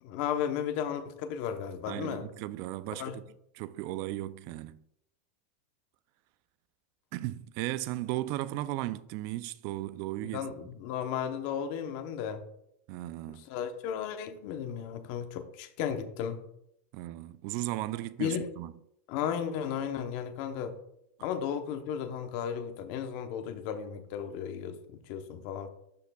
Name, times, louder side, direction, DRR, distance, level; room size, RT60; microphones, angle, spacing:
voice 1, 0.0-2.3 3.0-3.2 10.3-12.4 13.5-16.4 18.2-18.5 19.1-20.8 21.2-25.7, left 8 dB, 45° left, 0.8 m, -34 dB
voice 2, 1.9-3.2 3.5-4.8 7.1-10.5 12.9-13.5 16.9-18.7, right 16 dB, 40° right, 0.4 m, -36 dB
12.0 x 5.7 x 2.3 m
supercardioid pair, 150°, 7 cm